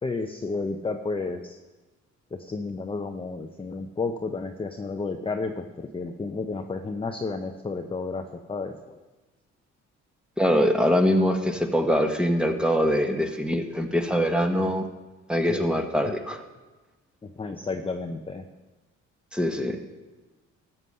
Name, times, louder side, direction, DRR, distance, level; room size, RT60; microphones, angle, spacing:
voice 1, 0.0-1.6 2.3-9.0 15.5-15.7 16.1-16.2 17.2-18.4, left 3 dB, 20° left, 5 dB, 0.6 m, -32 dB
voice 2, 10.4-14.9 15.3-16.4 19.3-19.8, equal, 5° right, 5 dB, 1.2 m, -23 dB
13.0 x 8.0 x 5.5 m, 1.2 s
cardioid pair, 90°, 30 cm